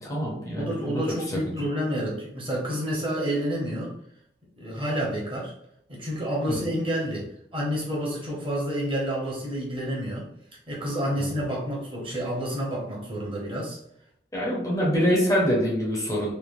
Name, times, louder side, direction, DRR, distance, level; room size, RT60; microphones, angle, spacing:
voice 1, 0.0-1.0 1.5-1.6 6.5-6.6 11.2-11.3 14.3-16.3, equal, 20° left, -4 dB, 0.6 m, -25 dB
voice 2, 0.5-4.0 4.6-5.5 5.9-10.3 10.7-13.8, equal, 30° right, -4 dB, 0.9 m, -29 dB
3.1 x 2.1 x 2.5 m, 0.74 s
head